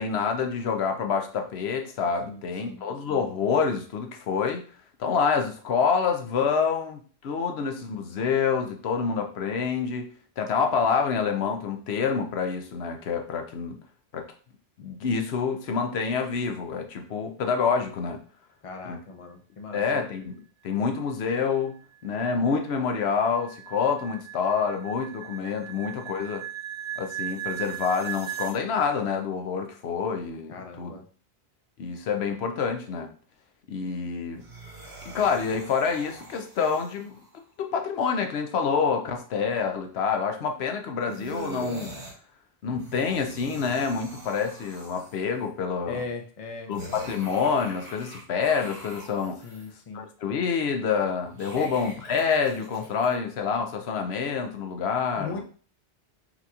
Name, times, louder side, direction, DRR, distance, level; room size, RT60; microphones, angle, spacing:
voice 1, 0.0-4.7 5.0-13.8 14.1-14.3 14.8-18.2 18.8-19.0 19.7-21.8 22.0-26.4 27.0-31.0 31.8-33.1 33.7-34.4 35.1-37.2 37.6-42.0 42.6-46.0 46.7-49.4 49.9-55.4, left 6 dB, 80° left, 4 dB, 0.9 m, -27 dB
voice 2, 2.2-2.8 18.6-19.8 25.6-25.8 30.5-31.1 45.9-46.7 49.4-50.1 51.6-51.7 55.2-55.4, left 4 dB, 40° left, 3 dB, 0.6 m, -38 dB
sound 1, 21.7-28.6, right 12 dB, 65° right, 0.8 m, -38 dB
sound 2, 34.3-37.4 41.1-42.1 42.6-45.4 46.7-49.7 51.2-53.2, right 2 dB, 85° right, 1.6 m, -43 dB
5.9 x 2.9 x 2.3 m, 0.42 s
omnidirectional pair, 1.1 m